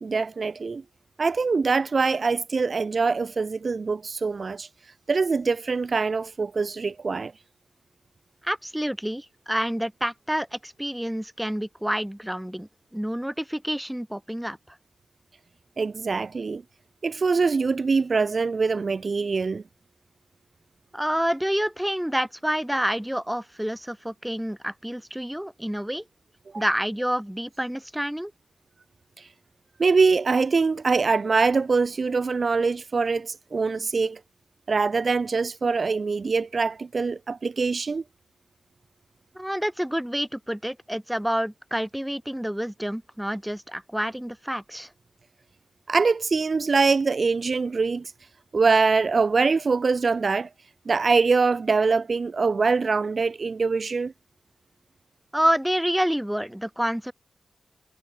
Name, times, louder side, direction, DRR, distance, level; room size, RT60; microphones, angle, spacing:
voice 1, 0.0-0.8 1.2-4.7 5.1-7.3 15.8-16.6 17.0-19.6 26.5-26.6 29.2-29.3 29.8-34.2 34.7-38.0 45.9-48.1 48.5-50.5 50.8-54.1, right 4 dB, 50° right, 1.4 m, -23 dB
voice 2, 8.4-14.8 20.9-26.0 26.6-28.3 39.4-44.9 55.3-57.1, equal, 5° right, 3.6 m, -28 dB
wide cardioid pair, 105°, 0 cm